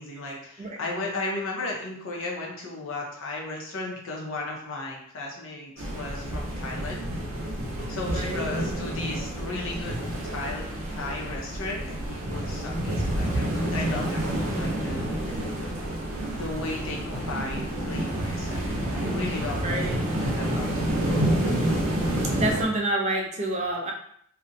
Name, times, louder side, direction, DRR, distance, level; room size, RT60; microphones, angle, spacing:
voice 1, 0.0-7.1 7.9-10.0 10.2-15.5 16.4-20.7, left 2 dB, 65° left, -1 dB, 0.7 m, -35 dB
sound 1, 5.8-22.6, right 1 dB, 75° right, 0.7 m, -29 dB
voice 2, 8.1-8.5 19.5-20.0 22.3-23.9, right 1 dB, 35° right, 0 dB, 0.4 m, -28 dB
2.4 x 2.0 x 2.6 m, 0.65 s
head